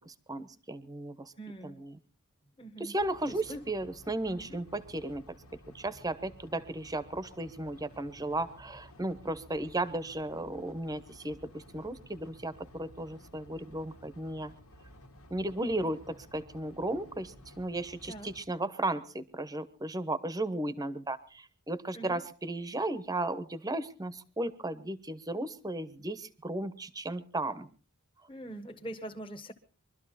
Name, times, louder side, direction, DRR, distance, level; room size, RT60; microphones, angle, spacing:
voice 1, 0.1-1.3 1.6-1.9 2.8-5.4 5.7-14.5 15.3-27.7, right 1 dB, 15° right, 14 dB, 1.0 m, -35 dB
voice 2, 1.4-1.8 2.6-2.9 3.3-3.6 4.4-4.6 18.1-18.3 21.9-22.2 28.3-29.5, right 1 dB, 25° left, 5 dB, 1.5 m, -43 dB
sound 1, 3.0-18.5, equal, 75° left, 2.2 m, -54 dB
23.5 x 13.0 x 4.2 m, 0.37 s
head